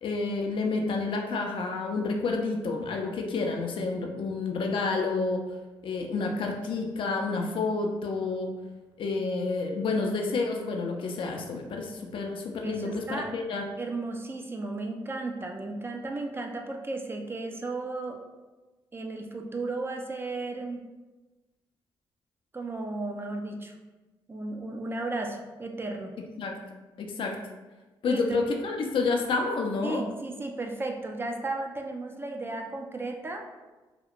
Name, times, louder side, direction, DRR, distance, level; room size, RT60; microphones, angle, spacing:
voice 1, 0.0-5.4 5.8-8.5 9.0-13.6 26.4-26.5 27.0-27.3 28.0-30.0, left 3 dB, 65° left, 2 dB, 0.4 m, -29 dB
voice 2, 12.6-13.3 13.8-18.2 18.9-20.8 22.5-23.7 24.3-26.1 28.0-28.5 29.8-33.4, right 2 dB, 25° right, 2 dB, 0.3 m, -34 dB
2.8 x 2.1 x 2.4 m, 1.2 s
cardioid pair, 75°, 10 cm